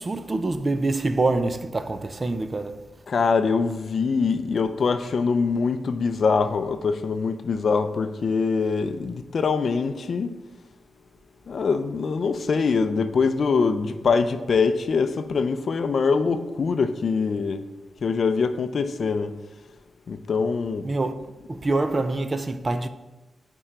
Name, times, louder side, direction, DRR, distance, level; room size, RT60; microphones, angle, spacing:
voice 1, 0.0-2.9 20.8-21.2 21.5-22.9, right 2 dB, 25° right, 0.4 m, -25 dB
voice 2, 3.1-10.3 11.5-17.6 18.0-19.4 20.1-20.9, left 5 dB, 50° left, 0.5 m, -23 dB
8.6 x 4.6 x 4.4 m
wide cardioid pair, 160°, 0 cm